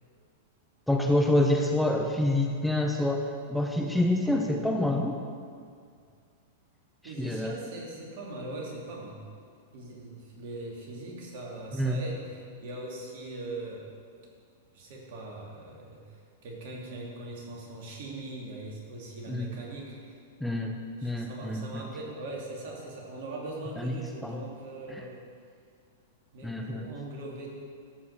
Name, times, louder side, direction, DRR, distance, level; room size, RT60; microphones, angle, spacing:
voice 1, 0.9-5.2 7.0-7.5 11.7-12.0 19.3-19.5 20.4-21.8 23.8-24.0 24.2-24.4 26.4-26.9, left 1 dB, ahead, 2 dB, 0.8 m, -27 dB
voice 2, 7.0-9.2 9.7-13.9 14.7-20.2 21.0-25.2 26.3-27.5, right 2 dB, 55° right, -2 dB, 2.8 m, -41 dB
13.0 x 5.5 x 6.6 m, 2.2 s
hypercardioid pair, 100°, 0 cm